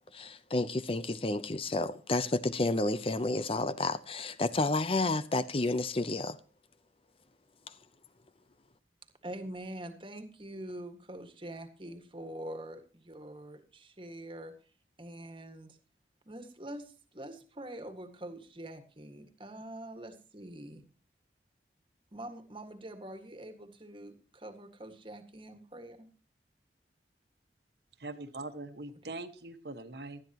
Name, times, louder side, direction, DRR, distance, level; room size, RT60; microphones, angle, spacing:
voice 1, 0.1-6.4 7.7-7.8, left 2 dB, 30° left, 0.7 m, -30 dB
voice 2, 9.2-14.5 15.0-15.8 16.3-20.8 22.1-26.1, right 1 dB, 30° right, 1.8 m, -45 dB
voice 3, 28.0-30.2, right 2 dB, 70° right, 1.5 m, -42 dB
18.5 x 12.5 x 3.0 m
head